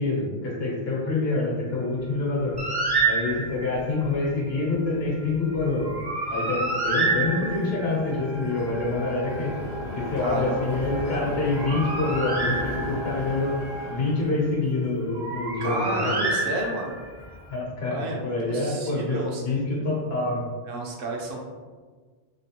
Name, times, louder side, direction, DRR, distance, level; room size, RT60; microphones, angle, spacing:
voice 1, 0.0-2.6 3.0-5.9 6.3-9.5 9.9-13.5 13.9-16.1 17.5-20.4, left 3 dB, 75° left, -3 dB, 1.2 m, -26 dB
sound 1, 1.7-17.6, left 1 dB, 50° left, 0.6 m, -39 dB
Bird, 2.6-3.7 5.8-7.9 11.3-13.2 15.2-17.1, right 3 dB, 35° right, 0.4 m, -27 dB
sound 2, 6.1-13.9, equal, 85° right, 1.2 m, -41 dB
voice 2, 10.2-10.7 15.6-17.0 17.9-18.2 18.4-19.4 20.7-21.4, right 2 dB, 65° right, 0 dB, 0.8 m, -31 dB
3.2 x 3.0 x 2.9 m, 1.5 s
omnidirectional pair, 1.0 m